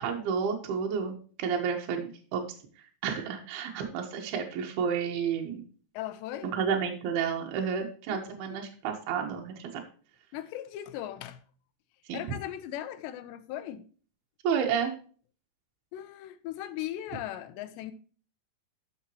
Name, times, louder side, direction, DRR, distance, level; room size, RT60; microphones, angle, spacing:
voice 1, 0.0-2.4 2.8-5.6 6.4-9.8 12.1-12.3 14.4-14.9, right 7 dB, 70° right, 3.2 m, -31 dB
voice 2, 5.9-6.6 8.1-8.6 10.3-11.4 12.1-13.9 15.9-17.9, left 12 dB, 90° left, 3.1 m, -38 dB
13.0 x 7.2 x 3.0 m
omnidirectional pair, 4.9 m